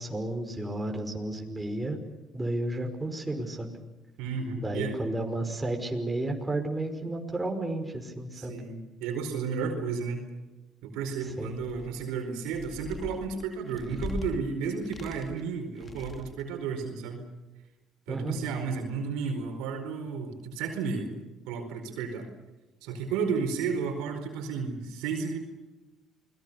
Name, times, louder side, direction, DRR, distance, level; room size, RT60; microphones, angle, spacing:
voice 1, 0.0-2.0 2.3-3.8 4.6-8.6 11.4-11.6 18.1-18.4, right 1 dB, 15° right, 3 dB, 5.5 m, -32 dB
voice 2, 4.2-4.9 8.3-10.3 10.8-17.2 18.1-21.1 21.5-22.3 22.8-25.4, right 5 dB, 80° right, 4 dB, 4.6 m, -32 dB
sound 1, 11.4-12.0 12.5-14.4 14.8-15.5 15.8-16.5, left 3 dB, 35° left, 2.6 m, -40 dB
29.0 x 21.0 x 6.9 m, 1.1 s
supercardioid pair, 70°, 0 cm